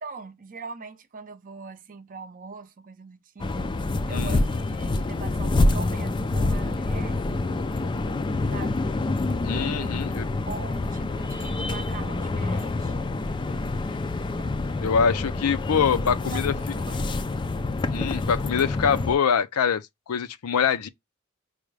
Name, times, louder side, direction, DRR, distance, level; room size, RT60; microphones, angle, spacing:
voice 1, 0.0-3.7 4.1-7.8 8.5-9.0 9.5-13.5 14.4-14.5 15.6-15.7 16.1-17.3, right 4 dB, 40° right, 0.5 m, -42 dB
sound 1, 3.4-19.2, left 2 dB, 20° left, 0.3 m, -27 dB
voice 2, 9.4-10.3 14.8-16.5 17.9-20.9, left 6 dB, 85° left, 0.5 m, -24 dB
4.8 x 2.2 x 3.2 m
head